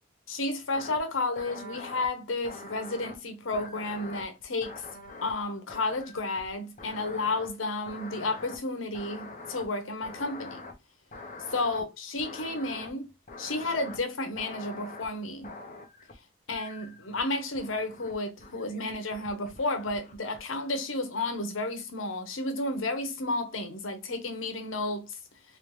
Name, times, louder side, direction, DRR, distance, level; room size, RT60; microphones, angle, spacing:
voice 1, 0.3-4.7 5.2-10.6 11.5-13.1 13.4-15.5 16.5-25.2, left 2 dB, 85° left, 1.0 m, -32 dB
sound 1, 0.7-1.0 1.4-2.1 2.4-3.2 3.5-5.4 5.7-6.5 6.8-7.5 7.9-8.6 8.9-9.6 10.0-10.7 11.1-11.8 12.2-12.9 13.3-14.0 14.4-15.1 15.4-16.1 16.5-17.2 17.6-18.1 18.4-20.4, left 3 dB, 40° left, 0.8 m, -44 dB
3.2 x 3.1 x 3.2 m
head